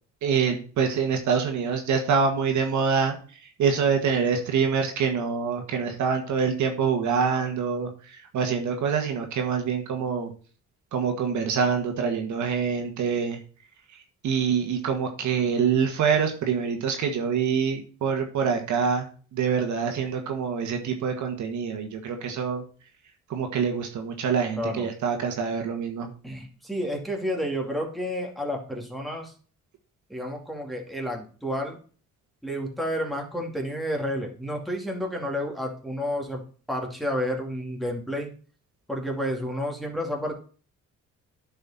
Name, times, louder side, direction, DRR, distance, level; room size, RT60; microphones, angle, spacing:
voice 1, 0.2-3.2 3.6-10.3 10.9-13.4 14.2-22.6 23.3-26.1, right 6 dB, 70° right, 4 dB, 1.7 m, -25 dB
voice 2, 24.6-24.9 26.2-29.3 30.1-31.8 32.4-38.3 38.9-40.3, equal, ahead, 0 dB, 2.5 m, -30 dB
10.0 x 5.5 x 4.2 m, 0.40 s
cardioid pair, 90°, 30 cm